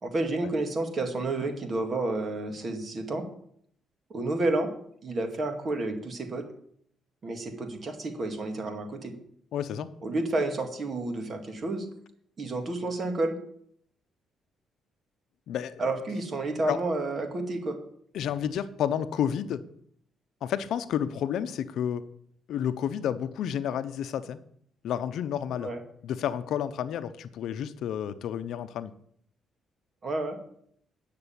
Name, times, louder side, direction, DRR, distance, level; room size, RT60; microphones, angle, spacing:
voice 1, 0.0-3.3 4.1-4.7 5.0-6.5 7.2-9.1 10.0-11.9 12.4-13.4 15.8-17.8 25.6-25.8 30.0-30.4, right 2 dB, 45° right, 5 dB, 2.2 m, -30 dB
voice 2, 9.5-9.9 15.5-15.8 16.7-16.8 18.1-19.6 20.4-22.0 22.5-24.4 24.8-25.7 26.0-28.9, left 9 dB, 75° left, 12 dB, 0.7 m, -30 dB
9.8 x 6.7 x 7.0 m, 0.66 s
cardioid pair, 90°, 0 cm